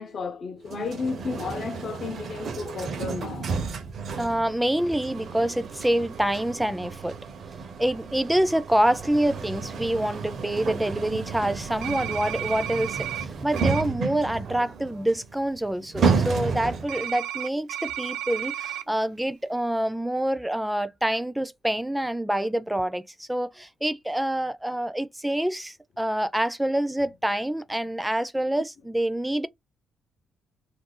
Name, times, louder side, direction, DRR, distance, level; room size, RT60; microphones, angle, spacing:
voice 1, 0.0-3.5, left 4 dB, 50° left, 0.6 m, -33 dB
sound 1, 0.7-17.1, right 5 dB, 55° right, 0.7 m, -32 dB
voice 2, 4.2-7.2 7.8-29.5, right 1 dB, 5° right, 0.5 m, -26 dB
sound 2, 11.8-13.3 13.6-13.8 16.9-18.8, right 11 dB, 90° right, 0.4 m, -33 dB
2.6 x 2.3 x 3.8 m
cardioid pair, 90°, 0 cm